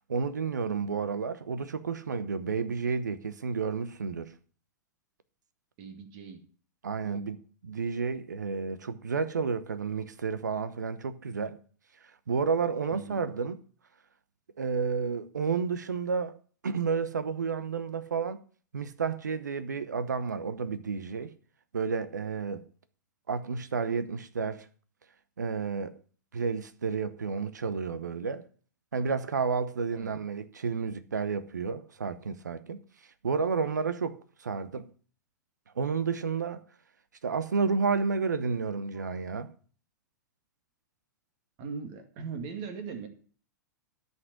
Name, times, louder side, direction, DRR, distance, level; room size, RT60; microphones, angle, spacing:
voice 1, 0.1-4.3 6.8-7.4 7.6-11.6 12.3-13.5 14.6-16.4 16.6-18.4 18.7-21.3 21.7-22.6 23.3-24.7 25.4-26.0 26.3-28.5 28.9-32.8 33.2-34.9 35.7-36.6 37.2-39.5, right 5 dB, 70° right, 0.9 m, -31 dB
voice 2, 5.8-6.4 7.0-7.2 12.9-13.2 29.9-30.2 41.6-43.1, right 5 dB, 45° right, 2.0 m, -41 dB
13.0 x 5.5 x 6.6 m
figure-of-eight pair, 100°, 10 cm